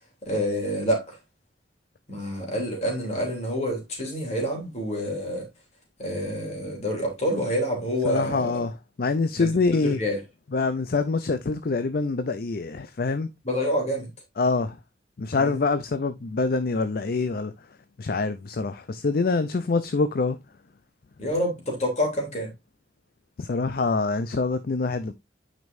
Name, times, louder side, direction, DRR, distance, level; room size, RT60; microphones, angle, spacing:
voice 1, 0.2-1.1 2.1-5.5 6.0-8.6 9.4-10.2 13.4-14.1 15.4-15.6 21.2-22.5, equal, 35° left, 3.0 m, -27 dB
voice 2, 8.1-10.0 10.5-13.3 14.4-14.8 15.2-17.5 18.0-20.4 23.4-25.1, left 3 dB, 55° left, 0.5 m, -25 dB
9.4 x 5.2 x 2.6 m
head